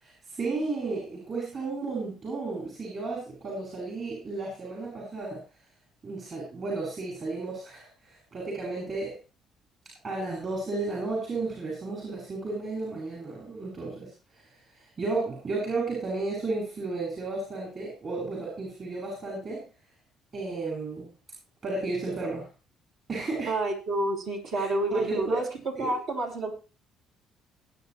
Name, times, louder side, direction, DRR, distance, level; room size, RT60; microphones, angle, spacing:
voice 1, 0.0-5.4 6.0-7.9 8.3-9.2 10.0-14.1 15.0-19.7 20.3-21.1 21.6-22.5 23.1-23.5 24.5-25.4 25.8-26.0, right 3 dB, 45° right, -3 dB, 7.1 m, -33 dB
voice 2, 23.5-25.5 25.8-26.5, right 2 dB, 75° right, 0 dB, 4.9 m, -29 dB
21.0 x 9.7 x 3.2 m, 0.32 s
cardioid pair, 95°, 0 cm